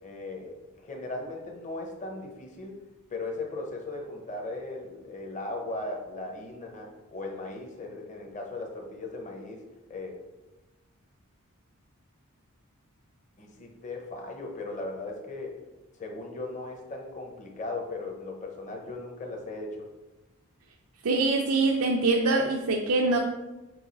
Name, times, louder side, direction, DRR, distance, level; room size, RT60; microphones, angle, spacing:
voice 1, 0.0-2.7 3.1-9.6 9.9-10.2 13.4-15.6 16.0-19.7, left 2 dB, 35° left, 1 dB, 0.9 m, -37 dB
voice 2, 21.0-23.2, right 3 dB, 70° right, 2 dB, 0.5 m, -24 dB
5.3 x 4.8 x 4.1 m, 1.1 s
head